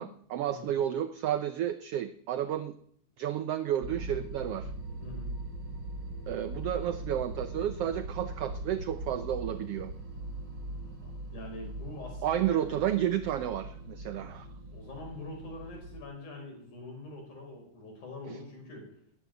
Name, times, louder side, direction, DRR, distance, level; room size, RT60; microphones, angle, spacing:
voice 1, 0.0-2.7 3.2-4.7 6.3-9.9 12.2-14.5, right 10 dB, 85° right, 11 dB, 1.3 m, -31 dB
sound 1, 3.8-16.0, right 2 dB, 40° right, 2.3 m, -41 dB
voice 2, 5.0-5.3 11.0-12.9 14.7-18.9, left 2 dB, 70° left, 1 dB, 6.7 m, -44 dB
13.0 x 10.5 x 9.2 m, 0.67 s
omnidirectional pair, 3.6 m